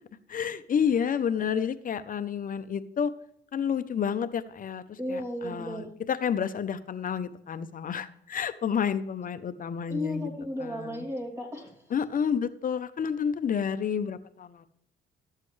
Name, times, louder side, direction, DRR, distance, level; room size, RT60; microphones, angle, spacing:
voice 1, 0.3-3.1 3.5-10.3 10.6-11.0 11.9-14.7, left 7 dB, 45° left, 12 dB, 0.7 m, -30 dB
voice 2, 5.0-5.9 9.9-11.9, left 1 dB, 15° right, -1 dB, 2.9 m, -34 dB
12.5 x 7.5 x 3.2 m, 0.74 s
cardioid pair, 90°, 20 cm